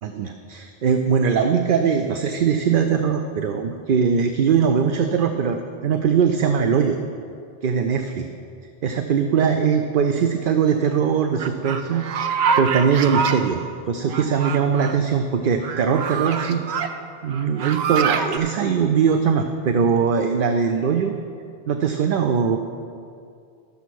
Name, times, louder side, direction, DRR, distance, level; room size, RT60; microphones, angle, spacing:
voice 1, 0.0-7.0 7.6-8.3 8.8-13.6 13.9-16.6 17.2-21.2 21.7-22.6, right 6 dB, 60° right, 6 dB, 0.7 m, -21 dB
sound 1, 11.4-13.4 14.1-14.9 15.6-16.9 17.3-18.4, right 6 dB, 90° right, 0.9 m, -25 dB
11.5 x 7.0 x 6.1 m, 2.4 s
omnidirectional pair, 1.0 m